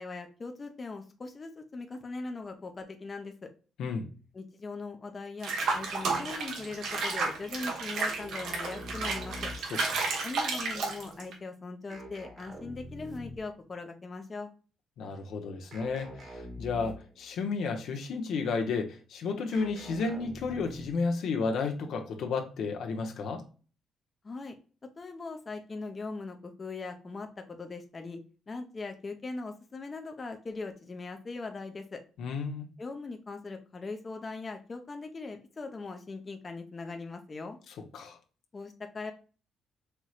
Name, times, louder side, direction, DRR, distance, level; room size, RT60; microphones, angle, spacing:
voice 1, 0.0-3.5 4.3-9.5 10.2-14.5 24.2-24.5 25.0-28.2 28.5-32.0 32.8-37.6 38.5-39.1, left 3 dB, 30° left, 0.7 m, -40 dB
Water / Bathtub (filling or washing), 5.4-11.3, right 3 dB, 80° right, 1.1 m, -32 dB
sound 1, 8.1-9.9 11.9-13.6 15.7-17.2 19.5-21.1, left 1 dB, 55° right, 1.4 m, -45 dB
voice 2, 9.7-10.1 15.0-23.4 32.2-32.7 37.9-38.2, left 4 dB, 75° left, 0.8 m, -32 dB
4.5 x 3.0 x 2.3 m
cardioid pair, 90°, 0 cm